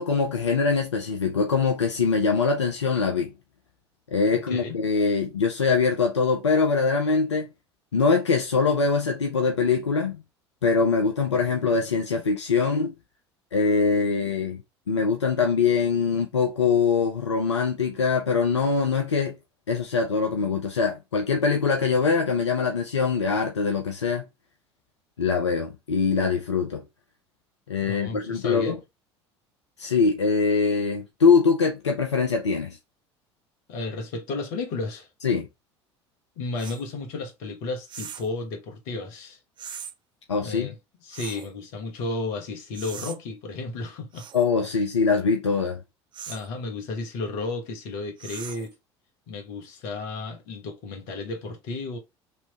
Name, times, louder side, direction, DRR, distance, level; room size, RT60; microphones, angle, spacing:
voice 1, 0.0-3.3 4.1-7.5 7.9-10.2 10.6-12.9 13.5-14.6 14.9-19.4 19.7-24.2 25.2-26.8 27.7-28.8 29.8-32.8 35.2-35.5 40.3-40.7 44.3-45.8, left 5 dB, 85° left, 0.5 m, -23 dB
voice 2, 4.3-4.8 27.8-28.8 33.7-35.1 36.4-39.4 40.4-40.8 41.0-44.3 46.3-48.7 49.3-52.0, left 3 dB, 60° left, 1.2 m, -33 dB
sound 1, 36.6-36.8 37.9-38.3 39.6-39.9 41.1-41.5 42.7-43.2 44.1-44.5 46.1-46.5 48.2-48.7, right 8 dB, 35° right, 0.5 m, -40 dB
3.3 x 3.0 x 4.1 m
figure-of-eight pair, 65°, 14 cm